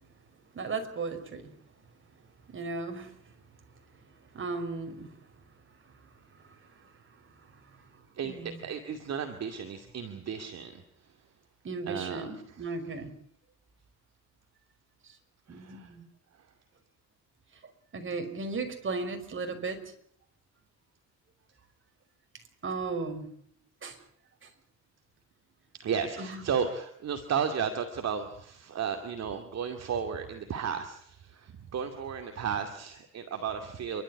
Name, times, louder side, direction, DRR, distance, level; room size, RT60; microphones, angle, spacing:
voice 1, 0.5-1.5 2.5-3.1 4.3-5.1 8.2-8.6 11.6-13.1 15.5-16.0 17.9-19.8 22.6-23.3 23.8-24.0 26.2-26.4, right 3 dB, 40° right, 5 dB, 5.6 m, -35 dB
voice 2, 8.1-11.2 11.9-12.7 15.5-15.9 16.3-16.5 25.8-34.0, right 7 dB, 60° right, 6 dB, 2.5 m, -34 dB
28.5 x 13.0 x 9.9 m, 0.66 s
cardioid pair, 90°, 30 cm